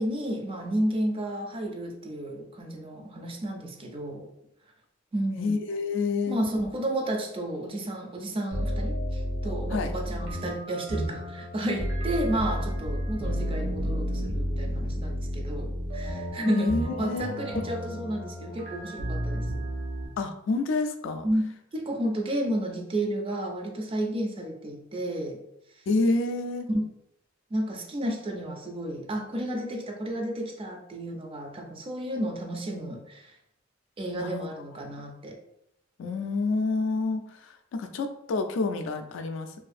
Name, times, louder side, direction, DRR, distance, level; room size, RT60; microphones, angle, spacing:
voice 1, 0.0-4.3 5.1-5.5 6.3-19.5 21.2-21.4 21.7-25.4 26.7-26.9 27.5-33.3 34.0-35.4, right 1 dB, 25° right, 3 dB, 0.4 m, -32 dB
voice 2, 5.4-6.4 9.7-9.9 16.5-17.3 17.5-17.7 20.2-21.3 25.9-26.7 34.1-34.5 36.0-39.5, left 3 dB, 70° left, 6 dB, 0.3 m, -28 dB
sound 1, 8.5-20.1, equal, 65° right, 0.8 m, -31 dB
2.6 x 2.4 x 2.4 m, 0.77 s
head